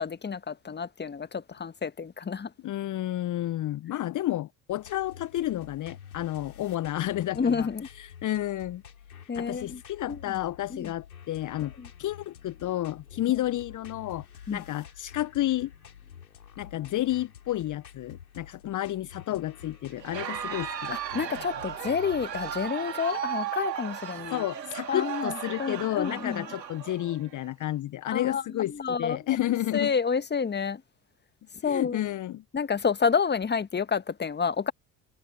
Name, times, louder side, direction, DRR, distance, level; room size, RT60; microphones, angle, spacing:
voice 1, 0.0-2.5 7.3-7.9 9.3-9.8 10.1-10.4 10.7-10.9 11.8-11.9 14.5-14.6 20.9-24.5 24.9-26.5 28.1-29.4 29.7-30.8 31.6-32.0 32.5-34.7, left 6 dB, 20° left, 1.6 m, -29 dB
voice 2, 2.6-7.7 7.9-8.8 9.1-11.7 12.0-15.7 16.6-21.4 24.3-29.9 31.6-32.4, left 14 dB, 40° left, 1.1 m, -31 dB
sound 1, 4.7-22.7, left 8 dB, 80° left, 6.4 m, -49 dB
Crowd, 20.0-27.5, right 9 dB, 80° right, 3.1 m, -36 dB
figure-of-eight pair, 55°, 49 cm